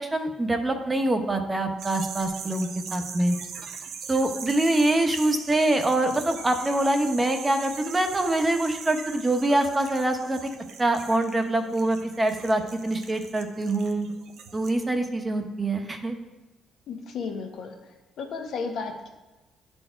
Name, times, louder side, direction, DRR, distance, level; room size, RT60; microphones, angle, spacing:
voice 1, 0.0-3.4 4.1-10.4 10.8-14.1 14.5-16.1, right 1 dB, 20° right, 5 dB, 1.1 m, -25 dB
sound 1, 1.8-14.7, right 6 dB, 70° right, 0.9 m, -41 dB
voice 2, 16.9-17.7 18.2-19.1, left 5 dB, 75° left, 3 dB, 1.4 m, -33 dB
10.5 x 4.5 x 4.6 m, 1.1 s
cardioid pair, 90°, 0 cm